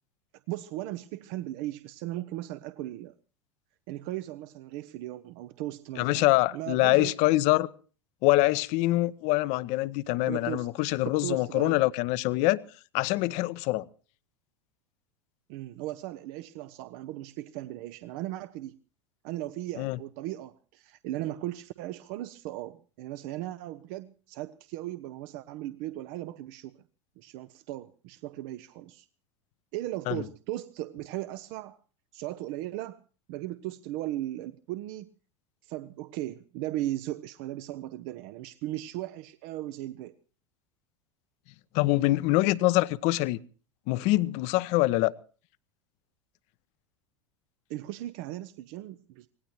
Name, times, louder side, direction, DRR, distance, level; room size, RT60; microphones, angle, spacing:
voice 1, 0.5-3.1 3.9-7.1 10.3-10.7 11.0-11.8 15.5-18.8 19.2-26.8 27.2-29.1 29.7-31.8 32.1-33.0 33.3-35.1 35.6-40.1 47.7-49.3, right 15 dB, 50° right, 0.7 m, -37 dB
voice 2, 6.0-7.7 8.2-12.6 12.9-13.9 19.8-20.0 30.1-30.2 41.7-43.4 43.9-45.1, left 18 dB, 45° left, 0.7 m, -24 dB
25.0 x 18.0 x 3.0 m
figure-of-eight pair, 80°, 16 cm